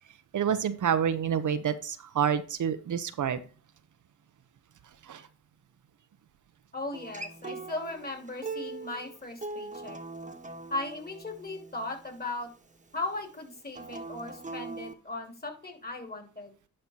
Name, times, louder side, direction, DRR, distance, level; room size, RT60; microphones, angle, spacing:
voice 1, 0.3-3.4 5.0-5.2, right 8 dB, 60° right, 11 dB, 0.8 m, -28 dB
voice 2, 6.7-10.0 10.7-12.5 12.9-16.5, left 2 dB, 25° left, 4 dB, 3.0 m, -37 dB
Acoustic guitar, 6.9-12.1 13.7-14.9, right 3 dB, 20° right, 1.4 m, -41 dB
10.5 x 4.4 x 4.3 m, 0.35 s
cardioid pair, 65°, 35 cm